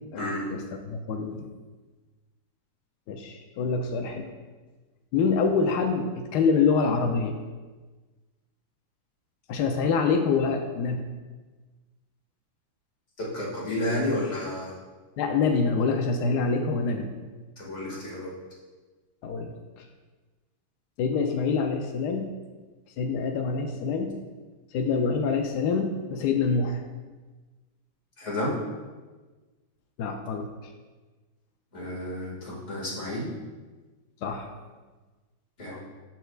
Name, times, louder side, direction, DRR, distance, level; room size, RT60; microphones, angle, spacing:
voice 1, 0.1-1.5 3.1-4.3 5.1-7.4 9.5-11.1 15.2-17.1 19.2-19.5 21.0-22.3 23.0-24.1 24.7-26.8 30.0-30.5 34.2-34.5, left 5 dB, 90° left, 5 dB, 0.9 m, -26 dB
voice 2, 13.2-14.7 17.6-18.3 28.2-28.5 31.7-33.3 35.6-35.8, left 1 dB, 35° left, -5 dB, 2.1 m, -31 dB
12.0 x 4.4 x 2.3 m, 1.3 s
omnidirectional pair, 2.3 m